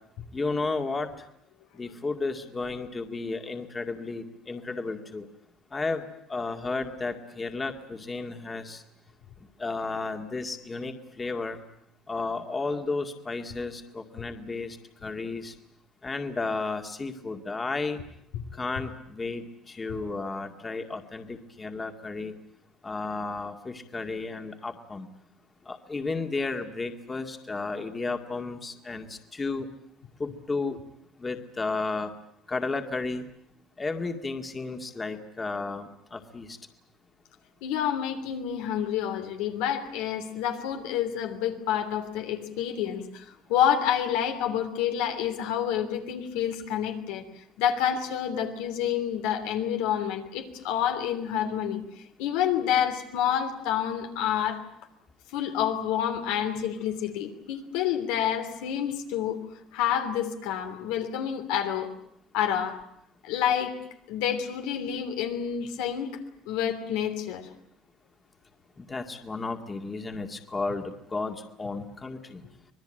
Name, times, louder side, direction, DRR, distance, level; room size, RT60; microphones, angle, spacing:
voice 1, 0.3-1.1 1.7-5.3 5.7-6.0 6.3-8.8 9.6-11.6 12.1-15.5 16.0-18.0 18.6-22.3 22.8-25.1 25.7-29.7 30.2-30.8 31.2-32.1 32.5-33.2 33.8-36.6 68.8-72.4, left 3 dB, 20° left, 6 dB, 2.1 m, -33 dB
voice 2, 37.6-47.2 47.6-51.8 52.2-54.6 55.3-59.4 59.7-61.9 62.3-62.8 63.2-63.7 64.1-66.1 66.5-67.5, left 9 dB, 85° left, 5 dB, 3.2 m, -28 dB
25.5 x 19.5 x 9.0 m, 0.76 s
cardioid pair, 110°, 0 cm